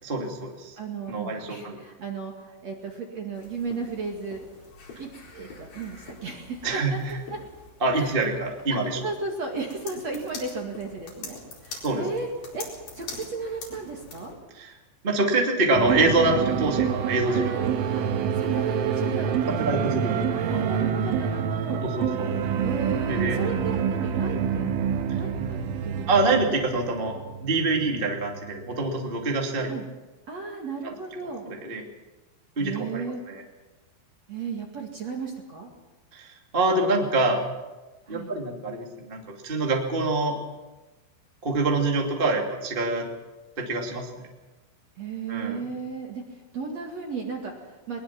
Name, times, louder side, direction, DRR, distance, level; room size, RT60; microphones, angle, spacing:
voice 1, 0.0-0.7 1.1-1.8 6.6-7.2 7.8-9.0 11.8-12.0 14.5-14.7 15.0-17.8 18.4-18.5 19.5-20.6 21.8-22.3 23.1-23.4 26.1-29.7 30.8-30.9 31.5-31.8 32.5-33.4 36.1-37.4 38.1-40.4 41.4-43.1 43.6-44.1 45.3-45.6, right 2 dB, 20° right, 0 dB, 1.6 m, -26 dB
voice 2, 0.8-4.4 5.0-7.0 7.9-8.2 8.7-11.4 11.6-12.3 12.5-12.7 12.9-14.3 17.3-17.7 18.0-18.1 18.4-19.9 20.3-21.8 22.6-24.7 25.1-26.2 29.7-29.9 30.3-31.4 32.6-33.2 34.3-35.7 38.1-38.3 45.0-46.2 46.5-48.0, right 4 dB, 45° right, 1 dB, 2.4 m, -35 dB
sound 1, 3.3-14.3, left 3 dB, 50° left, 5.8 m, -44 dB
sound 2, 15.7-29.4, right 7 dB, 85° right, 3.8 m, -27 dB
21.5 x 21.0 x 6.0 m, 1.2 s
omnidirectional pair, 5.5 m